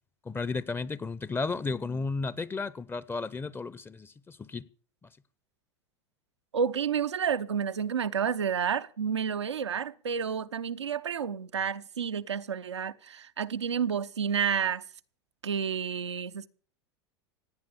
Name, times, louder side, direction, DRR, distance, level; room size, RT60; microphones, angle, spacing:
voice 1, 0.2-4.7, left 4 dB, 15° left, 0.8 m, -33 dB
voice 2, 6.5-14.9 15.4-16.5, right 7 dB, 85° right, 0.7 m, -30 dB
17.0 x 9.2 x 7.0 m
hypercardioid pair, 90°, 14 cm